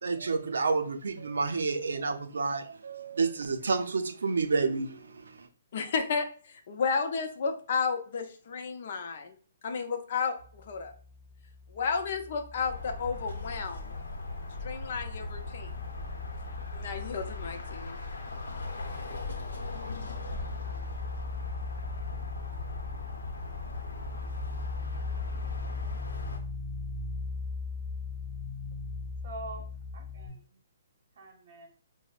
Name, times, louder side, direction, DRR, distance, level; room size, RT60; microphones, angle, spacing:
voice 1, 0.0-5.5, right 4 dB, 85° right, 0.4 m, -30 dB
voice 2, 5.7-9.4 9.6-10.9 11.7-13.9 14.6-15.7 16.7-18.0, left 5 dB, 45° left, 0.5 m, -32 dB
sound 1, 10.4-14.2 14.5-30.3, left 3 dB, 15° right, 1.2 m, -40 dB
sound 2, 12.6-26.4, left 3 dB, 85° left, 0.7 m, -39 dB
voice 3, 29.2-30.6 31.2-31.7, right 2 dB, 50° right, 0.8 m, -44 dB
4.9 x 2.0 x 2.3 m
hypercardioid pair, 165°, 0 cm